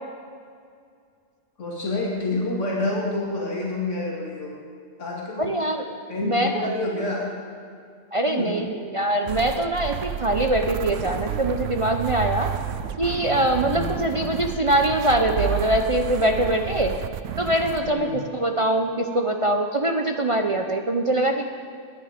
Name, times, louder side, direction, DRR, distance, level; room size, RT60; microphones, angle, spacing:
voice 1, 1.6-4.5 5.0-5.5 6.1-7.2 8.2-8.6 13.6-13.9 17.8-18.2, left 2 dB, 80° left, -4 dB, 2.6 m, -28 dB
voice 2, 5.4-5.9 6.2-6.7 8.1-12.5 13.0-16.9 17.4-21.5, right 1 dB, 35° right, 4 dB, 0.7 m, -23 dB
sound 1, 9.2-17.9, right 10 dB, 85° right, 1.0 m, -31 dB
20.0 x 9.5 x 5.1 m, 2.3 s
omnidirectional pair, 1.2 m